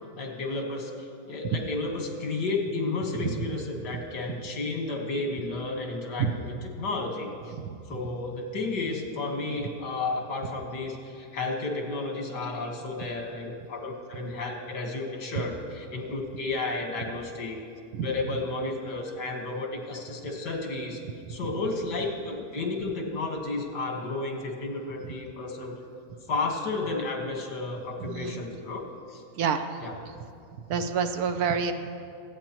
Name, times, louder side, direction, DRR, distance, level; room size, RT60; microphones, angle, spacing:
voice 1, 0.2-6.3 6.8-7.6 7.9-17.6 18.0-21.0 21.3-25.8 26.3-29.2 29.8-29.9, left 3 dB, 80° left, 2 dB, 2.1 m, -32 dB
voice 2, 28.1-28.4 29.4-29.8 30.7-31.7, right 6 dB, 70° right, 8 dB, 1.1 m, -28 dB
24.5 x 8.9 x 3.0 m, 2.4 s
omnidirectional pair, 1.8 m